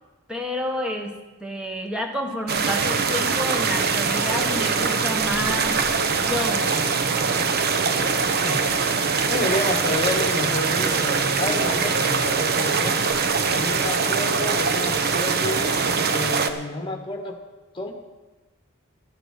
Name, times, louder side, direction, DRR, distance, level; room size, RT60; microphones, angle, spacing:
voice 1, 0.3-1.1 1.4-5.8 6.1-6.7, left 1 dB, 5° right, 3 dB, 1.3 m, -29 dB
sound 1, 2.5-16.5, right 5 dB, 50° right, 0.8 m, -23 dB
voice 2, 8.4-13.0 13.5-15.8 16.1-17.4 17.7-17.9, left 1 dB, 25° left, 4 dB, 1.5 m, -30 dB
13.0 x 9.2 x 6.5 m, 1.2 s
head